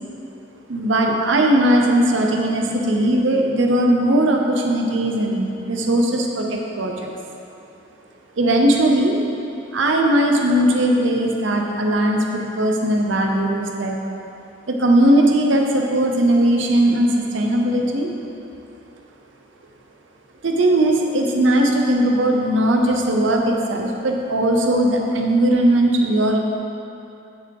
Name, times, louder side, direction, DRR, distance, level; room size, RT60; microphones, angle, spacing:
voice 1, 0.7-7.1 8.4-9.2 9.7-14.2 14.7-18.1 20.4-26.4, right 1 dB, 80° right, 1 dB, 0.7 m, -18 dB
7.2 x 6.0 x 4.8 m, 2.7 s
head